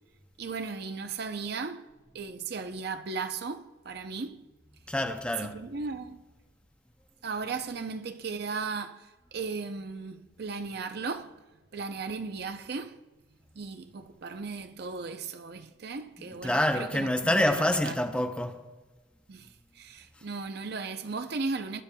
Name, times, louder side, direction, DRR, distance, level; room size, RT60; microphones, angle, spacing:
voice 1, 0.4-1.9 2.1-4.4 5.4-6.2 7.2-11.4 11.7-13.0 13.5-17.9 19.3-21.8, right 4 dB, 60° right, 0.6 m, -36 dB
voice 2, 4.9-5.5 16.4-18.6, left 1 dB, 5° left, 0.6 m, -27 dB
21.5 x 10.5 x 2.3 m
head